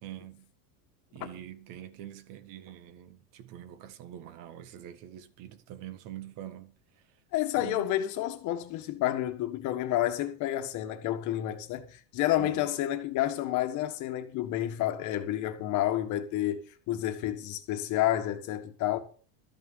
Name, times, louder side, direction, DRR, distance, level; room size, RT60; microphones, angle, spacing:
voice 1, 0.0-0.5 1.1-7.2 7.6-7.9 12.4-12.7, right 12 dB, 45° right, 1.4 m, -45 dB
voice 2, 7.3-19.0, left 13 dB, 40° left, 1.6 m, -30 dB
13.0 x 6.3 x 7.8 m
supercardioid pair, 160°, 44 cm